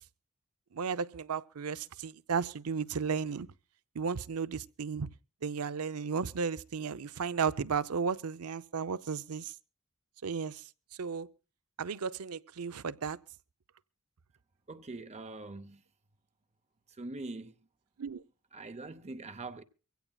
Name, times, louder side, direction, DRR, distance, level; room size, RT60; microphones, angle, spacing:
voice 1, 0.7-3.5 4.0-5.1 5.4-9.5 10.2-10.6 11.0-11.3 11.8-13.2 18.0-18.2, right 6 dB, 90° right, 0.6 m, -34 dB
voice 2, 14.7-15.8 16.9-17.6 18.5-19.6, right 2 dB, 30° right, 0.7 m, -43 dB
24.0 x 16.0 x 2.3 m
head